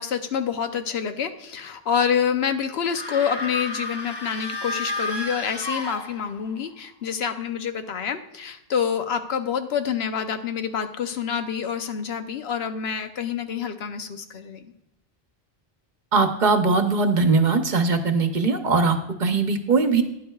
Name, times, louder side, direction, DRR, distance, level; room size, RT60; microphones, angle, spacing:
voice 1, 0.0-14.7, left 7 dB, 85° left, 8 dB, 1.0 m, -27 dB
sound 1, 2.9-6.5, left 2 dB, 30° left, 0.7 m, -31 dB
voice 2, 16.1-20.0, right 4 dB, 50° right, 7 dB, 0.9 m, -20 dB
12.5 x 10.5 x 2.3 m, 0.87 s
omnidirectional pair, 1.0 m